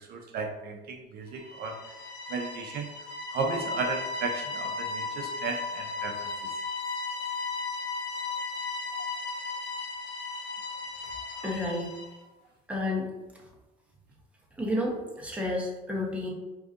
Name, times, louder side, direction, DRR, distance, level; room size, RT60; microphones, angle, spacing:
voice 1, 0.0-1.8 2.3-2.9 3.3-6.3, right 4 dB, 65° right, 3 dB, 0.5 m, -34 dB
sound 1, 1.4-12.1, left 3 dB, 80° left, 0.8 m, -35 dB
voice 2, 11.4-12.0 12.7-13.1 14.6-16.3, left 1 dB, 5° right, -2 dB, 0.9 m, -31 dB
4.6 x 2.7 x 2.5 m, 1.1 s
cardioid pair, 110°, 17 cm